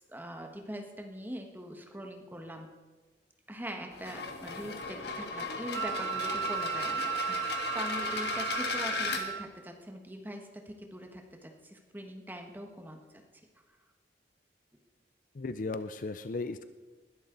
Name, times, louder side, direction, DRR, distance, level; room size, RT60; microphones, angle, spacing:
voice 1, 0.1-2.7 3.5-13.2, equal, 10° right, 3 dB, 1.4 m, -42 dB
sound 1, 3.9-9.2, left 4 dB, 70° left, 1.5 m, -36 dB
Wind instrument woodwind instrument, 5.7-9.5, right 9 dB, 90° right, 0.6 m, -35 dB
voice 2, 15.4-16.7, left 3 dB, 45° left, 11 dB, 0.5 m, -36 dB
20.5 x 11.5 x 3.9 m, 1.3 s
head